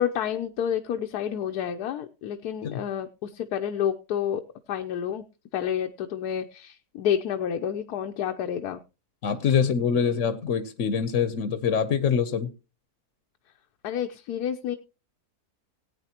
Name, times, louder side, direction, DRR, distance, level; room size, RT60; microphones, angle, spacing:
voice 1, 0.0-4.4 4.7-5.2 5.5-8.8 13.8-14.8, left 9 dB, 85° left, 5 dB, 1.3 m, -29 dB
voice 2, 9.2-12.5, left 7 dB, 60° left, 12 dB, 1.1 m, -24 dB
18.5 x 9.0 x 2.9 m, 0.30 s
omnidirectional pair, 1.6 m